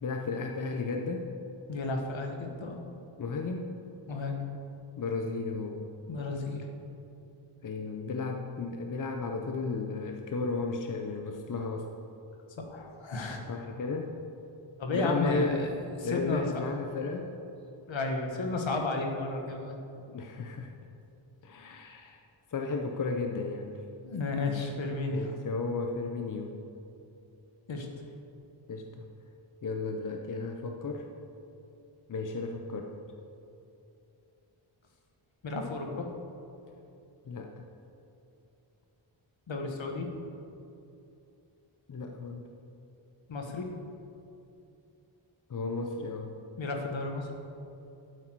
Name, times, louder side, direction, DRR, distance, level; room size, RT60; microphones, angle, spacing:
voice 1, 0.0-1.3 3.2-3.8 5.0-5.8 7.6-11.9 13.5-14.1 14.9-15.7 16.0-17.3 20.1-20.7 21.4-22.2 22.5-23.7 25.1-26.6 28.7-29.1 29.6-31.1 32.1-32.9 37.3-37.6 41.9-42.5 45.5-46.3, left 3 dB, 40° left, 3 dB, 0.7 m, -34 dB
voice 2, 1.7-2.8 4.1-4.4 6.1-6.6 12.6-13.4 14.8-15.7 16.0-16.6 17.9-19.8 24.0-25.3 27.7-27.9 35.4-36.1 39.5-40.1 43.3-43.7 46.6-47.3, left 3 dB, 65° left, 3 dB, 1.5 m, -33 dB
12.0 x 8.4 x 4.6 m, 2.7 s
wide cardioid pair, 155°, 49 cm